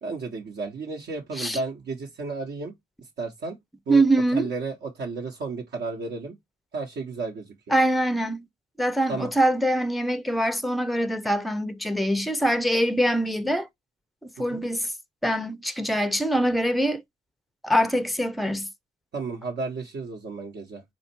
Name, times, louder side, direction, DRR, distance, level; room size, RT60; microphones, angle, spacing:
voice 1, 0.0-2.7 3.2-3.6 3.9-4.0 4.3-6.4 6.7-7.7 9.1-9.3 14.5-14.6 19.1-20.8, right 3 dB, 60° right, 1.1 m, -33 dB
voice 2, 3.9-4.5 7.7-8.5 8.8-13.7 14.2-14.9 15.2-17.0 17.6-18.7, right 1 dB, ahead, 0.5 m, -24 dB
4.2 x 2.4 x 4.3 m
cardioid pair, 90°, 20 cm